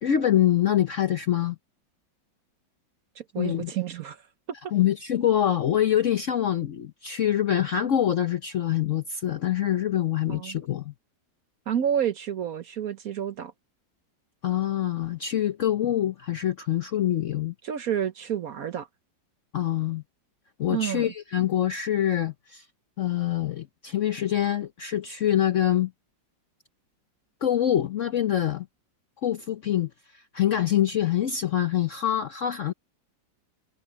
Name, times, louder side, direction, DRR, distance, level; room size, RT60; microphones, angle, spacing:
voice 1, 0.0-1.6 3.4-3.7 4.7-10.9 14.4-17.5 19.5-20.0 20.6-22.6 23.0-25.9 27.4-28.7 29.2-32.7, left 11 dB, 60° left, 0.8 m, -25 dB
voice 2, 3.2-4.2 10.3-10.6 11.7-13.5 17.6-18.9 20.7-21.1, right 9 dB, 60° right, 1.1 m, -29 dB
omnidirectional pair, 2.0 m